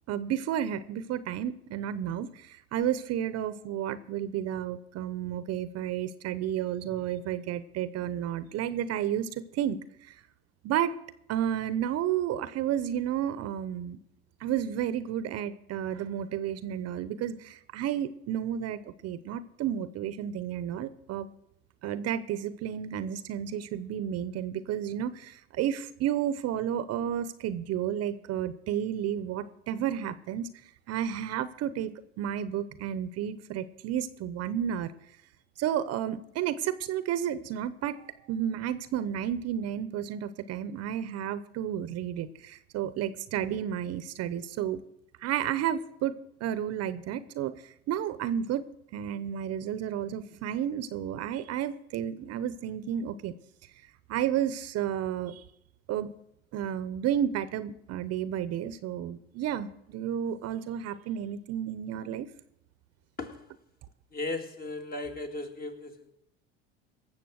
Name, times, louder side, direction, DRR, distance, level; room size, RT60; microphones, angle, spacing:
voice 1, 0.1-9.8 10.0-10.1 10.6-10.9 11.3-14.0 14.4-21.3 21.8-30.5 30.9-34.9 35.6-44.8 45.2-48.7 48.9-53.3 54.1-55.4 55.9-56.1 56.5-62.3, right 10 dB, 50° right, 15 dB, 0.8 m, -32 dB
voice 2, 64.1-66.1, left 2 dB, 30° left, 5 dB, 2.1 m, -36 dB
18.0 x 7.2 x 6.4 m, 0.78 s
hypercardioid pair, 90°, 32 cm